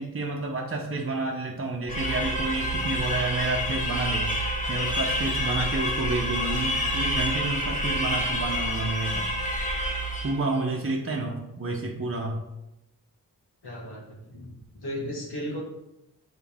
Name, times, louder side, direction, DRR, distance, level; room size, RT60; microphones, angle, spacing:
voice 1, 0.0-4.3 4.7-9.3 10.2-12.4, right 3 dB, 35° right, 0 dB, 0.9 m, -30 dB
sound 1, 1.9-10.5, equal, 20° left, 1.2 m, -28 dB
voice 2, 13.6-15.7, equal, 80° left, -2 dB, 1.8 m, -36 dB
6.9 x 4.1 x 3.5 m, 0.90 s
cardioid pair, 50°, 39 cm